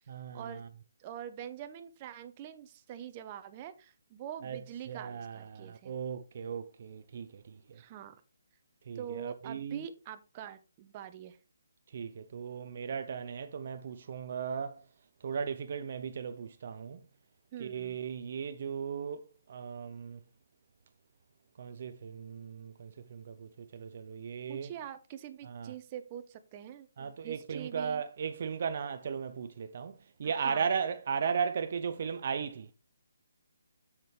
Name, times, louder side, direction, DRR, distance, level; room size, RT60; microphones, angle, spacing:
voice 1, 0.1-0.4 4.4-4.6 4.9-7.4 8.9-9.8 11.9-14.7 15.2-17.0 17.6-19.2 19.5-20.2 21.6-24.7 25.5-25.7 27.0-29.9 30.2-32.7, right 6 dB, 50° right, 0.6 m, -36 dB
voice 2, 1.0-5.9 7.7-8.2 8.9-11.4 17.5-18.0 24.5-28.0 30.2-30.7, right 10 dB, 30° right, 0.9 m, -44 dB
7.7 x 7.4 x 3.3 m
hypercardioid pair, 150°, 0 cm